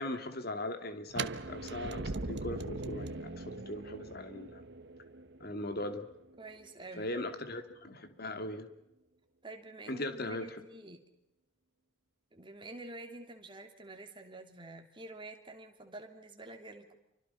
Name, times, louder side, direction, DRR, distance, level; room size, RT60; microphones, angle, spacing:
voice 1, 0.0-4.6 5.4-6.1 7.0-8.7 9.9-10.5, left 1 dB, 55° left, 7 dB, 2.6 m, -39 dB
sound 1, 1.1-7.0, right 3 dB, 60° right, 1.1 m, -41 dB
voice 2, 6.4-7.1 9.4-11.0 12.3-17.0, right 2 dB, 25° right, 4 dB, 3.1 m, -48 dB
29.0 x 25.0 x 5.7 m, 0.86 s
head